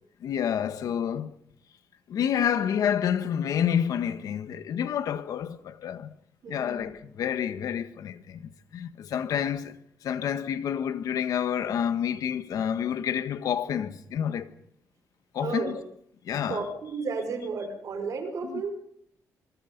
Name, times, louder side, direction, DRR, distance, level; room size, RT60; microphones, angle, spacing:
voice 1, 0.2-1.3 2.1-6.1 6.5-8.4 8.7-9.8 10.0-14.5 15.3-15.7 16.2-16.6 18.4-18.6, left 9 dB, 80° left, 1.6 m, -28 dB
voice 2, 6.4-6.9 15.4-15.8 16.5-18.7, right 4 dB, 65° right, 5.4 m, -33 dB
26.0 x 23.5 x 5.4 m
cardioid pair, 125°, 6 cm